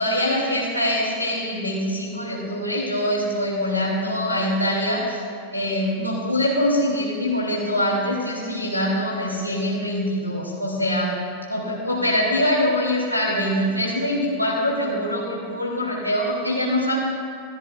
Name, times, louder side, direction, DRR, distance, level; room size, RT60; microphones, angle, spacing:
voice 1, 0.0-5.2 5.5-11.1 11.5-17.0, left 1 dB, 85° left, -5 dB, 3.1 m, -23 dB
18.0 x 14.0 x 2.6 m, 2.1 s
figure-of-eight pair, 90°, 0 cm